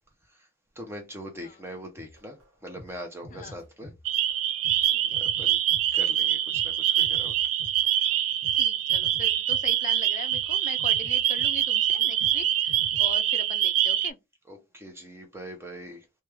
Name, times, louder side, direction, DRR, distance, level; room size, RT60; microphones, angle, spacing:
voice 1, 0.8-2.4 2.6-3.9 5.1-5.6 5.9-7.3 14.5-16.0, equal, 10° right, 0.5 m, -41 dB
sound 1, 2.0-8.6 8.9-10.0 10.3-10.5 10.8-11.9 12.2-12.4 12.7-13.1, left 1 dB, 85° right, 0.9 m, -47 dB
voice 2, 3.3-3.6 4.9-5.2 8.6-14.2, left 6 dB, 40° left, 0.4 m, -41 dB
sound 2, 4.0-14.1, right 11 dB, 70° right, 0.4 m, -25 dB
3.1 x 2.2 x 3.3 m
head